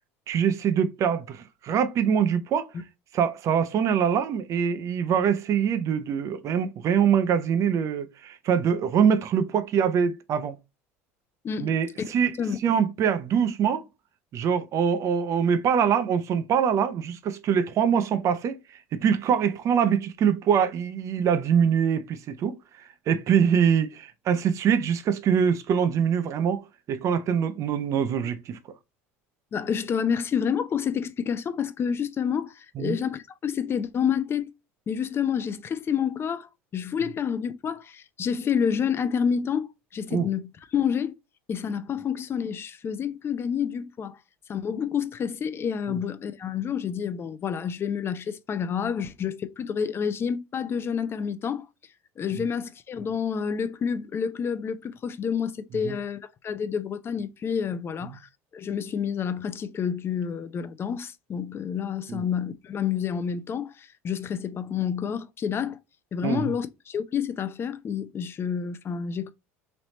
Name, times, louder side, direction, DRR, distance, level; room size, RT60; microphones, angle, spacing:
voice 1, 0.3-2.7 3.1-10.6 11.6-12.4 12.6-13.8 14.3-18.6 18.9-26.6 26.9-28.6 32.8-33.0 40.1-40.3 45.9-46.0 55.8-56.0 58.0-58.2 62.1-62.2 66.2-66.5, right 7 dB, 45° right, 0.6 m, -24 dB
voice 2, 29.5-34.5 34.9-41.1 41.5-44.2 44.5-51.7 52.2-65.8 66.1-69.3, left 7 dB, 35° left, 0.5 m, -29 dB
3.2 x 3.0 x 3.9 m
hypercardioid pair, 85°, 7 cm